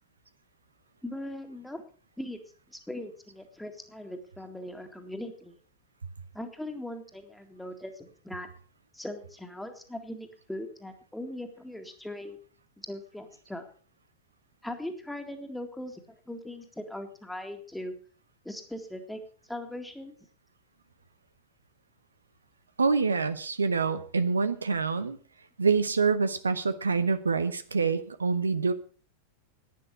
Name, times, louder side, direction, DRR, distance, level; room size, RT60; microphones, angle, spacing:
voice 1, 1.0-1.8 2.2-2.4 2.7-5.6 6.3-8.5 8.9-12.4 12.8-13.7 14.6-17.9 18.4-19.2 19.5-20.1, left 1 dB, 5° left, 5 dB, 2.1 m, -40 dB
voice 2, 22.8-25.2 25.6-28.7, right 4 dB, 75° right, 12 dB, 0.8 m, -26 dB
11.0 x 9.9 x 6.2 m, 0.42 s
figure-of-eight pair, 90°, 0 cm